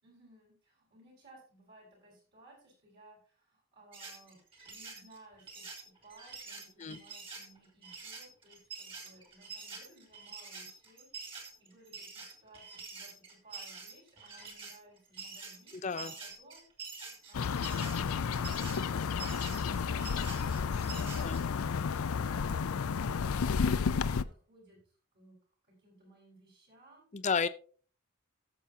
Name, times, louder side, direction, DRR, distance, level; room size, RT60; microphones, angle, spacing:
voice 1, 0.0-16.7 17.0-21.9 22.3-25.4 25.7-27.1, right 1 dB, 50° right, 0 dB, 5.0 m, -59 dB
sound 1, 3.9-21.4, right 4 dB, 25° right, 2.5 m, -46 dB
voice 2, 15.7-16.1 21.2-21.4 27.1-27.5, left 5 dB, 35° left, 11 dB, 0.5 m, -32 dB
sound 2, 17.3-24.2, left 6 dB, 85° left, 0.5 m, -32 dB
18.0 x 7.1 x 2.8 m, 0.42 s
head